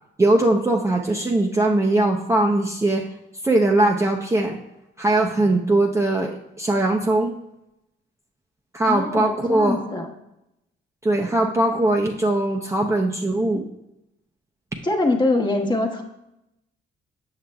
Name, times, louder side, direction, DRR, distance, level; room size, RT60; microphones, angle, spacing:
voice 1, 0.2-3.0 3.4-4.6 5.0-7.3 8.7-9.8 11.0-13.6, right 2 dB, 15° right, 0 dB, 0.6 m, -20 dB
voice 2, 8.9-10.1 14.8-16.0, left 2 dB, 20° left, 1 dB, 1.1 m, -23 dB
7.5 x 6.4 x 2.3 m, 0.86 s
cardioid pair, 90°, 20 cm